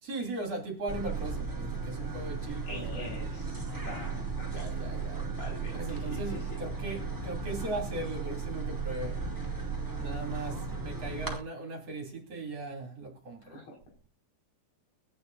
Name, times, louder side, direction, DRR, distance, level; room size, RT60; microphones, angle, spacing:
voice 1, 0.0-3.2 4.5-5.2 5.7-9.2 10.0-13.6, right 2 dB, 40° right, 3.3 m, -38 dB
sound 1, 0.9-11.4, right 4 dB, 20° right, 0.5 m, -35 dB
voice 2, 2.6-4.7 5.2-6.6 13.4-13.8, left 1 dB, 90° left, 7.9 m, -45 dB
23.0 x 9.7 x 2.6 m
omnidirectional pair, 5.0 m